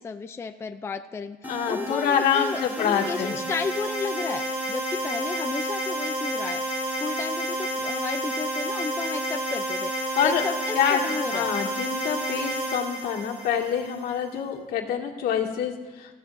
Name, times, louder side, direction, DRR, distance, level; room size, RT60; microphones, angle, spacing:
voice 1, 0.0-11.5, left 4 dB, 15° left, 7 dB, 0.5 m, -33 dB
sound 1, 1.4-14.1, right 1 dB, 10° right, 3.7 m, -30 dB
voice 2, 1.5-3.3 10.2-10.4 10.7-16.2, left 8 dB, 75° left, -1 dB, 2.2 m, -26 dB
28.5 x 15.0 x 2.6 m, 1.2 s
cardioid pair, 165°, 16 cm